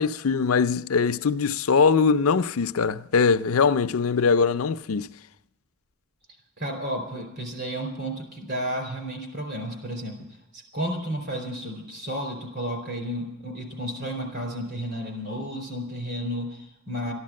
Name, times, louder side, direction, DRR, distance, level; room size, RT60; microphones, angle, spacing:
voice 1, 0.0-5.1, left 5 dB, 75° left, 0.5 m, -22 dB
voice 2, 6.6-10.3 10.5-17.1, equal, 50° right, 4.2 m, -32 dB
13.5 x 11.5 x 7.6 m
head